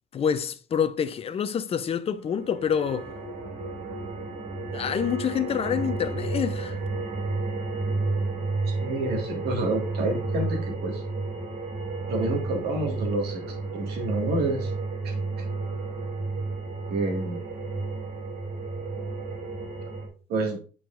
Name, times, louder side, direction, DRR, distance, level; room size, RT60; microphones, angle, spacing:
voice 1, 0.1-3.1 4.7-6.8, left 7 dB, 35° left, 0.6 m, -27 dB
sound 1, 2.2-20.1, right 3 dB, 45° right, 1.6 m, -32 dB
voice 2, 8.7-11.0 12.1-13.4 13.8-14.7 15.0-15.5 16.9-17.4 20.3-20.6, right 2 dB, 70° right, 1.9 m, -29 dB
8.9 x 4.7 x 2.5 m
cardioid pair, 110°, 17 cm